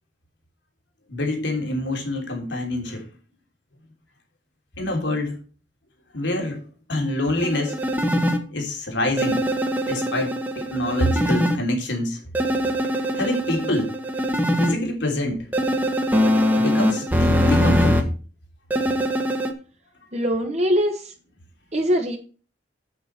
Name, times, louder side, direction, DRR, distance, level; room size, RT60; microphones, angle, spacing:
voice 1, 1.1-3.1 4.8-5.4 6.1-6.6 6.9-7.8 8.5-9.4 9.9-12.2 13.1-13.9 14.6-15.5 16.5-18.1, left 1 dB, 85° left, 3.3 m, -26 dB
sound 1, 7.4-8.4 9.2-11.6 12.3-14.7 15.5-18.0 18.7-19.5, equal, 10° right, 1.3 m, -22 dB
voice 2, 20.1-21.1 21.7-22.2, equal, 40° right, 1.4 m, -22 dB
8.4 x 7.7 x 4.5 m
head